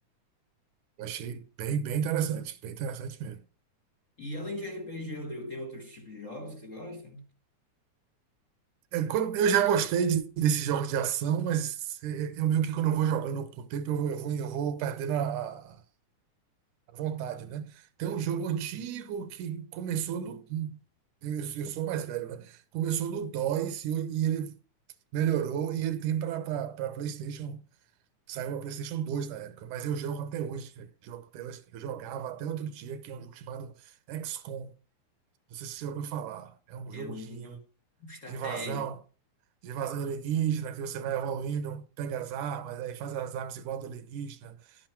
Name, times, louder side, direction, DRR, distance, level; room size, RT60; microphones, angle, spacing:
voice 1, 1.0-3.4 8.9-15.8 16.9-17.7 18.0-20.8 21.2-24.6 25.1-27.6 28.3-33.7 34.1-34.7 35.5-37.6 38.3-38.9 39.6-44.6, right 8 dB, 85° right, 2.5 m, -31 dB
voice 2, 4.2-7.2 36.9-37.6 38.0-38.9, left 1 dB, 35° left, 1.3 m, -39 dB
11.0 x 9.7 x 4.6 m
omnidirectional pair, 3.4 m